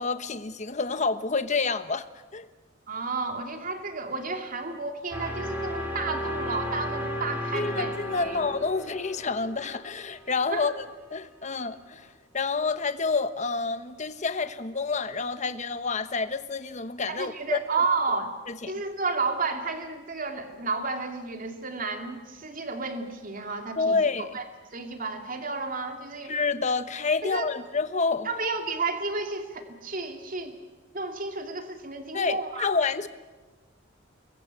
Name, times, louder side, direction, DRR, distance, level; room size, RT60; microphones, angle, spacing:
voice 1, 0.0-2.1 2.3-2.5 7.5-10.8 11.1-12.1 12.3-17.6 18.5-18.7 23.8-24.3 26.3-28.3 32.1-33.1, left 4 dB, 35° left, 11 dB, 1.1 m, -28 dB
voice 2, 2.9-8.4 10.5-10.7 17.1-18.3 18.7-24.0 24.3-24.4 24.7-26.3 27.2-27.4 28.2-30.6 30.9-32.7, right 4 dB, 45° right, 5 dB, 2.6 m, -32 dB
sound 1, 5.1-11.1, equal, 10° right, 4.4 m, -34 dB
28.5 x 22.0 x 8.4 m, 1.2 s
head